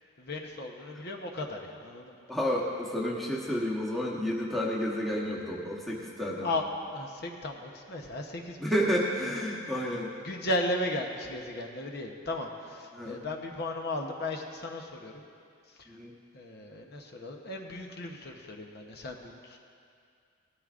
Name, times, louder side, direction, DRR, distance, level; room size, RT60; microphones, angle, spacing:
voice 1, 0.2-2.1 6.4-8.6 9.2-9.4 10.2-15.2 16.3-19.6, left 1 dB, 45° left, 2 dB, 0.9 m, -35 dB
voice 2, 2.3-6.5 8.6-10.1 12.9-13.2 15.9-16.1, equal, ahead, -5 dB, 1.0 m, -30 dB
18.0 x 13.0 x 2.5 m, 2.4 s
head